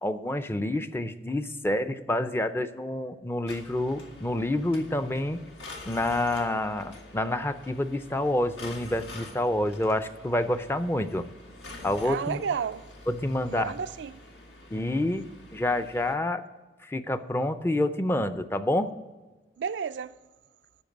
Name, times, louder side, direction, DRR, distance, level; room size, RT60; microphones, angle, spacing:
voice 1, 0.0-5.4 5.8-11.3 11.8-12.4 13.1-13.7 14.7-15.2 15.5-16.4 16.8-18.9, left 1 dB, 15° left, 0.4 m, -28 dB
sound 1, 3.5-16.1, left 2 dB, 85° left, 1.7 m, -46 dB
voice 2, 12.0-12.8 13.5-14.1 19.6-20.2, right 6 dB, 85° right, 0.4 m, -31 dB
12.5 x 4.6 x 7.8 m
head